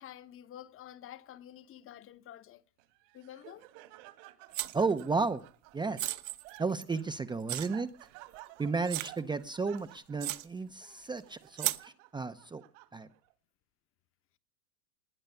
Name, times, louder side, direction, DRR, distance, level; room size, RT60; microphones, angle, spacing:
voice 1, 0.0-2.6 3.1-3.7, left 11 dB, 30° left, 1.1 m, -49 dB
Laughter, 2.8-13.3, right 18 dB, 60° right, 2.1 m, -55 dB
sound 1, 4.5-5.0 6.0-7.0 7.5-7.7 8.3-8.4 8.9-9.2 9.8-9.9 10.2-10.5 11.6-11.8, right 18 dB, 40° right, 1.1 m, -34 dB
voice 2, 4.7-5.4 5.7-6.2 6.6-7.9 8.6-12.6 12.9-13.1, right 4 dB, 10° right, 0.7 m, -33 dB
20.0 x 9.7 x 6.7 m
supercardioid pair, 120°, 42 cm